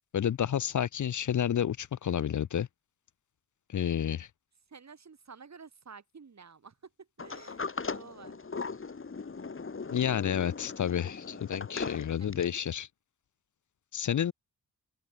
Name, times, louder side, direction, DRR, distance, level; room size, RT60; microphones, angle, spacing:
voice 1, 0.1-2.7 3.7-4.3 9.9-12.9 13.9-14.3, left 9 dB, 60° left, 0.7 m, -30 dB
voice 2, 4.7-7.6 7.9-8.4 11.3-11.4 12.2-12.7, right 5 dB, 50° right, 7.8 m, -51 dB
Sliding door, 7.2-12.6, left 4 dB, 35° left, 3.0 m, -39 dB
open air
wide cardioid pair, 100°, 34 cm